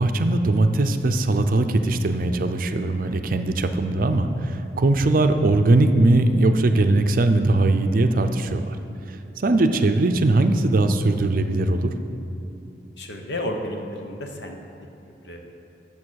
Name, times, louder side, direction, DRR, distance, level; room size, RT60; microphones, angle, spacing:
voice 1, 0.0-8.7 9.4-11.9, right 2 dB, 50° right, 7 dB, 0.5 m, -20 dB
voice 2, 13.0-14.6 15.2-15.4, left 1 dB, 70° left, 3 dB, 1.1 m, -31 dB
8.6 x 7.0 x 6.4 m, 2.8 s
head